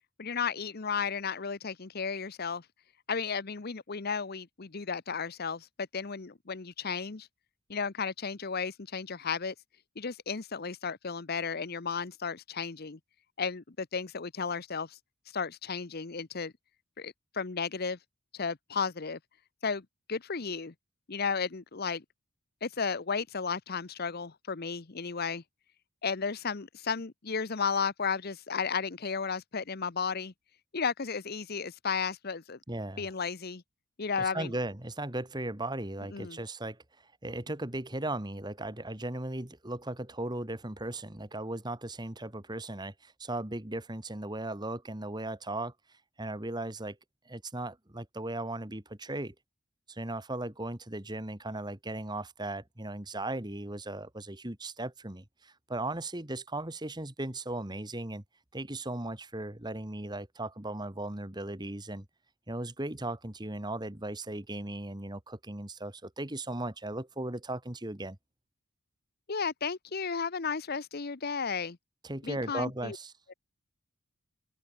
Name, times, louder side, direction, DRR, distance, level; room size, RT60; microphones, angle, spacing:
voice 1, 0.2-2.6 3.1-7.3 7.7-9.5 10.0-13.0 13.4-15.0 15.3-16.5 17.0-18.0 18.3-19.2 19.6-20.7 21.1-22.0 22.6-25.4 26.0-30.3 30.7-32.6 33.0-33.6 34.0-34.5 36.1-36.4 69.3-71.8 72.2-73.0 73.3-73.4, left 5 dB, 45° left, 0.8 m, -34 dB
voice 2, 32.7-33.0 34.2-36.8 37.2-45.7 46.2-47.0 47.3-49.3 49.9-58.2 58.5-62.1 62.5-68.2 72.0-73.1, right 2 dB, 20° right, 2.0 m, -37 dB
open air
head